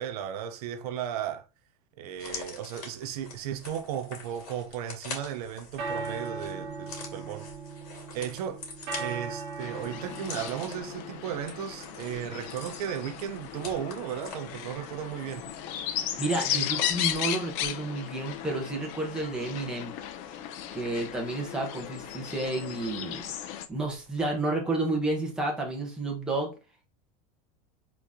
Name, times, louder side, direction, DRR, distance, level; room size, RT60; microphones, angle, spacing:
voice 1, 0.0-1.5 2.0-7.5 8.1-8.6 9.0-15.5, right 9 dB, 75° right, 0.6 m, -35 dB
sound 1, 2.1-17.8 18.1-18.3, left 4 dB, 70° left, 2.4 m, -45 dB
sound 2, 5.6-24.5, right 4 dB, 45° right, 1.3 m, -42 dB
sound 3, 9.6-23.7, left 11 dB, 40° left, 0.5 m, -36 dB
voice 2, 15.9-19.9 20.7-23.3 23.7-26.5, right 2 dB, 5° right, 1.0 m, -31 dB
3.9 x 3.0 x 3.5 m
supercardioid pair, 175°, 20 cm